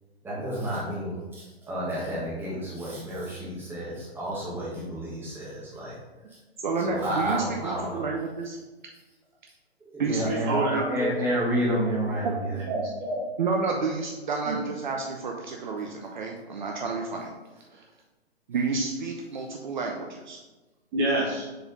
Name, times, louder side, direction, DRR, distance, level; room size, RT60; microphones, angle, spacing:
voice 1, 0.2-1.2 1.7-5.9 6.8-8.0 9.9-12.3, equal, 5° right, -6 dB, 1.5 m, -30 dB
voice 2, 6.6-8.6 10.0-10.8 12.2-12.3 13.4-17.3 17.7-17.8 18.5-20.4, right 4 dB, 50° right, 1 dB, 0.8 m, -30 dB
voice 3, 10.3-11.2 11.6-11.7 12.7-13.2 14.4-14.6 20.9-21.5, right 1 dB, 25° right, -4 dB, 1.0 m, -28 dB
6.7 x 4.1 x 3.9 m, 1.2 s
figure-of-eight pair, 125°, 32 cm